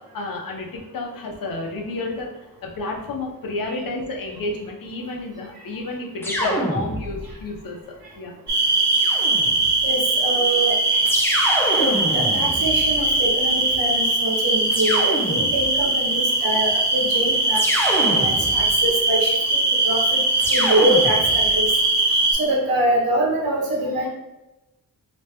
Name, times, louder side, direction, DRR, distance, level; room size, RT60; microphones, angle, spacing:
voice 1, 0.1-2.3 2.6-7.8 8.1-8.3, left 2 dB, 75° left, 1 dB, 0.8 m, -31 dB
sound 1, 6.2-7.4 8.9-9.8 11.0-13.4 14.7-15.8 17.5-18.9 20.4-21.6, equal, 5° left, 0.4 m, -27 dB
sound 2, 8.5-22.3, right 2 dB, 55° right, 1.1 m, -20 dB
voice 2, 9.8-11.4 11.8-17.6 18.0-19.6 19.8-20.2 20.5-21.7 22.4-24.1, right 1 dB, 90° right, -2 dB, 1.2 m, -24 dB
3.0 x 2.9 x 3.3 m, 0.99 s
wide cardioid pair, 160°, 34 cm